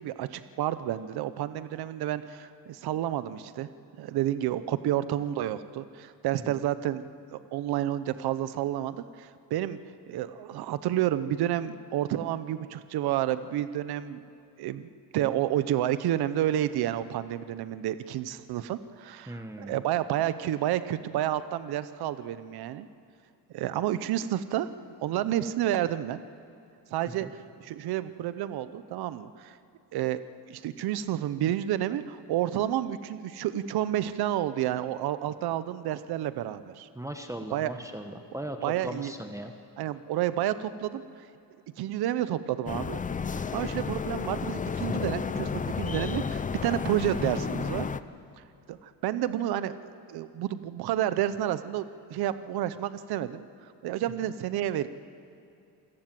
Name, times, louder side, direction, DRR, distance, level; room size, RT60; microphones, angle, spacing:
voice 1, 0.0-3.7 4.0-7.0 7.3-9.8 10.1-14.2 14.6-22.9 23.5-24.7 25.0-26.2 26.9-27.3 27.6-29.6 29.9-30.2 30.5-36.9 37.5-37.7 38.6-39.1 39.8-41.0 41.8-43.0 43.5-47.9 48.7-51.8 52.1-53.4 53.8-54.9, right 12 dB, 70° right, 13 dB, 0.9 m, -30 dB
voice 2, 19.3-19.8 27.1-27.3 36.9-39.5 43.7-44.0, right 1 dB, 10° right, 5 dB, 1.2 m, -38 dB
sound 1, 42.7-48.0, left 5 dB, 20° left, 0.6 m, -32 dB
27.5 x 16.5 x 7.7 m, 2.7 s
cardioid pair, 130°, 39 cm